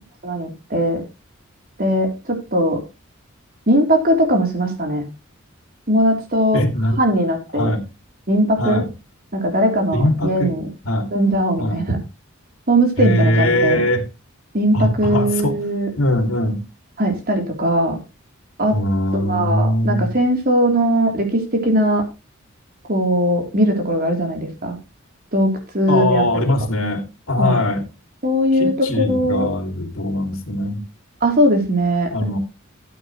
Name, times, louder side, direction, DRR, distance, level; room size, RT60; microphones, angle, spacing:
voice 1, 0.2-1.0 1.8-2.8 3.7-5.0 5.9-6.6 7.0-7.7 8.3-8.8 9.3-10.7 11.1-12.0 12.7-13.9 14.5-15.9 17.0-18.0 18.6-18.8 19.1-22.0 22.9-24.8 25.3-26.5 27.4-27.6 28.2-29.5 31.2-32.1, equal, 45° right, 3.5 m, -19 dB
voice 2, 6.5-7.0 7.5-7.9 8.6-8.9 9.9-10.6 10.8-11.1 11.6-11.8 13.0-14.0 14.7-15.5 16.0-16.6 18.7-20.1 25.9-27.9 28.6-30.8 32.1-32.4, left 1 dB, 80° left, 2.7 m, -21 dB
13.5 x 8.8 x 3.2 m
head